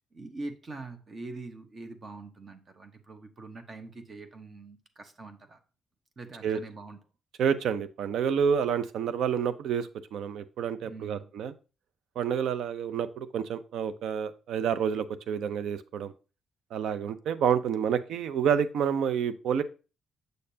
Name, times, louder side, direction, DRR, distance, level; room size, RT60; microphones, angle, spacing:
voice 1, 0.1-5.6 6.2-7.0 10.8-11.3, right 3 dB, 40° right, 1.0 m, -43 dB
voice 2, 7.4-11.5 12.2-16.1 16.7-19.6, right 7 dB, 75° right, 0.5 m, -29 dB
6.6 x 6.5 x 2.7 m
cardioid pair, 90°, 0 cm